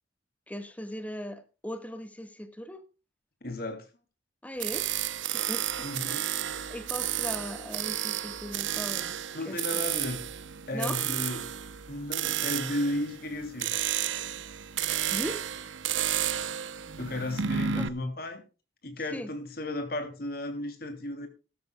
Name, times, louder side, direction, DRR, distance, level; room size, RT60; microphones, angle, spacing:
voice 1, 0.5-2.8 4.4-4.9 5.3-5.9 6.7-9.1 9.4-9.8 10.7-11.0 15.1-15.4 17.7-17.9 19.1-19.3, equal, 10° left, 1.5 m, -38 dB
voice 2, 3.4-3.9 5.8-6.3 9.3-10.3 10.7-11.5 11.9-13.7 17.0-18.4 18.8-21.3, left 1 dB, 55° left, 3.1 m, -34 dB
sound 1, 4.6-17.9, right 10 dB, 90° right, 0.9 m, -32 dB
16.5 x 13.5 x 2.3 m
head